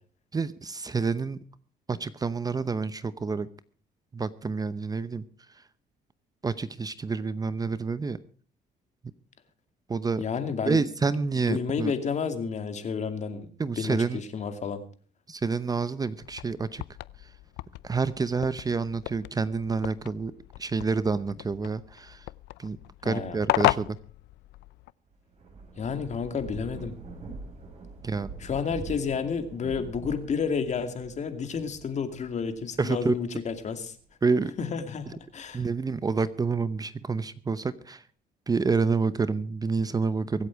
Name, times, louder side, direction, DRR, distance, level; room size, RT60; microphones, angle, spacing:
voice 1, 0.3-1.4 1.9-3.5 4.1-5.7 6.4-8.2 9.9-10.2 10.6-11.9 13.6-14.2 15.3-16.8 17.2-17.3 17.8-20.3 20.6-22.3 22.6-22.8 23.0-24.0 28.0-28.3 32.8-33.2 34.2-34.5 35.1-35.2 35.5-38.0 38.5-40.5, right 4 dB, 20° right, 15 dB, 0.8 m, -28 dB
voice 2, 10.2-10.8 11.5-13.5 13.8-14.8 23.0-23.4 25.8-26.9 28.4-33.9 34.6-35.6, left 6 dB, 45° left, 9 dB, 2.5 m, -31 dB
sound 1, 16.2-24.9, left 18 dB, 80° left, 0.5 m, -34 dB
Thunder / Rain, 25.1-34.0 34.5-35.9, right 3 dB, 40° right, 6.5 m, -44 dB
24.0 x 8.4 x 4.7 m, 0.43 s
cardioid pair, 110°, 17 cm